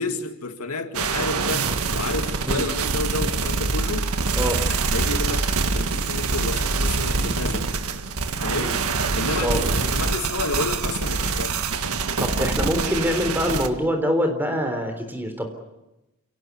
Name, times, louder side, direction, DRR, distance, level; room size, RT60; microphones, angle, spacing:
voice 1, 0.0-4.1 4.7-7.7 8.4-8.8 9.2-11.6, left 3 dB, 90° left, 2.2 m, -30 dB
sound 1, 0.9-13.7, right 4 dB, 80° right, 1.7 m, -25 dB
voice 2, 4.3-4.6 8.5-8.7 9.4-9.6 12.2-15.5, equal, 10° right, 3.7 m, -25 dB
29.0 x 18.0 x 9.6 m
head